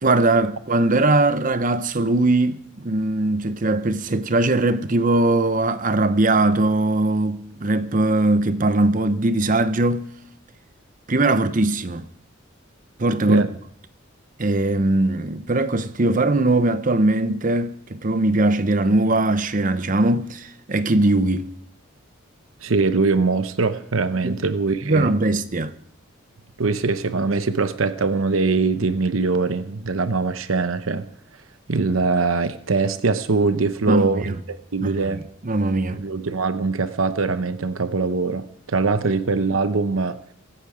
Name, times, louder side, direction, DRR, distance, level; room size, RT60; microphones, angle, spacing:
voice 1, 0.0-10.1 11.1-12.1 13.0-13.4 14.4-21.5 24.2-24.4 24.8-25.7 33.9-34.3 34.8-35.0 35.4-36.0, right 2 dB, 40° right, 0.8 m, -20 dB
voice 2, 22.6-25.1 26.6-31.1 31.7-35.2 35.9-40.2, right 4 dB, 85° right, 0.8 m, -22 dB
23.5 x 9.1 x 5.0 m
head